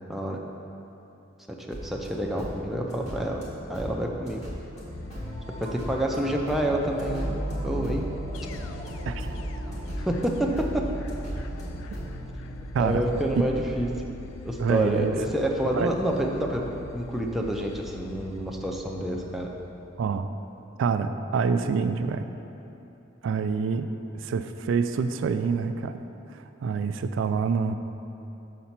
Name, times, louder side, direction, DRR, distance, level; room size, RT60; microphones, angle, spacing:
sound 1, 1.7-12.2, equal, 35° left, 1.6 m, -39 dB
voice 1, 1.8-3.4 3.7-4.4 5.6-7.3 7.6-8.1 10.0-10.9 12.8-13.9 14.4-16.6 16.9-19.5, right 1 dB, ahead, -1 dB, 0.5 m, -28 dB
sound 2, 4.9-20.3, left 3 dB, 85° left, 0.3 m, -43 dB
sound 3, 7.0-14.3, right 1 dB, 35° right, 0.7 m, -36 dB
voice 2, 14.6-15.1 15.7-15.9 20.0-20.3 20.8-22.3 23.2-23.9 24.1-26.0 26.3-27.7, right 5 dB, 75° right, 9 dB, 0.3 m, -26 dB
6.6 x 4.2 x 5.9 m, 2.9 s
head